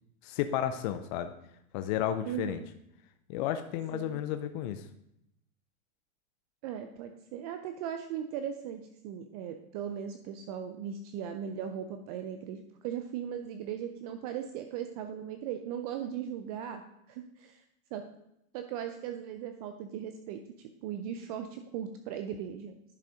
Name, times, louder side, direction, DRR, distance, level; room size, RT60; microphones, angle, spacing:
voice 1, 0.2-1.3 1.7-2.6 3.3-4.9, left 11 dB, 35° left, 8 dB, 0.4 m, -32 dB
voice 2, 2.3-2.7 3.9-4.2 6.6-16.8 17.1-17.6 17.9-18.0 18.5-22.9, right 9 dB, 30° right, 7 dB, 0.4 m, -38 dB
10.5 x 4.0 x 4.9 m, 0.78 s
hypercardioid pair, 140°, 41 cm